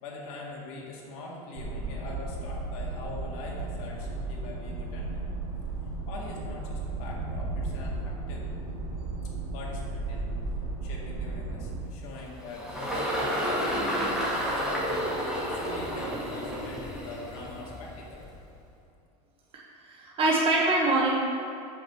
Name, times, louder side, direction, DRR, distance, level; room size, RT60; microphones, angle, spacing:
voice 1, 0.0-5.2 6.1-8.4 9.5-10.4 10.8-15.0 15.5-18.2, left 2 dB, 60° left, -3 dB, 1.9 m, -43 dB
sound 1, 1.5-11.8, right 3 dB, 55° right, 1.8 m, -34 dB
Engine, 11.8-18.4, equal, 5° right, 1.9 m, -31 dB
voice 2, 19.5-21.1, right 2 dB, 30° right, -3 dB, 1.2 m, -25 dB
5.6 x 5.4 x 6.5 m, 2.8 s
supercardioid pair, 125°, 20 cm